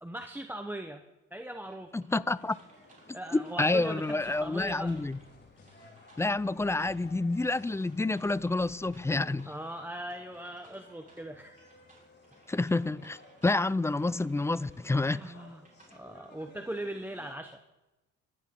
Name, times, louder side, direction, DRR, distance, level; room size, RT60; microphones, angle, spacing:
voice 1, 0.0-1.0 1.3-1.9 3.1-5.0 9.5-11.6 15.1-15.6 15.9-17.6, right 1 dB, 5° right, 0.9 m, -40 dB
sound 1, 1.6-15.9, right 2 dB, 25° right, 4.8 m, -62 dB
voice 2, 1.9-2.6 3.3-5.2 6.2-9.5 12.5-15.3, left 2 dB, 10° left, 0.4 m, -29 dB
sound 2, 2.3-17.3, left 3 dB, 35° left, 4.2 m, -57 dB
sound 3, 3.6-9.2, left 6 dB, 75° left, 5.3 m, -58 dB
24.0 x 10.0 x 3.8 m
cardioid pair, 90°, 30 cm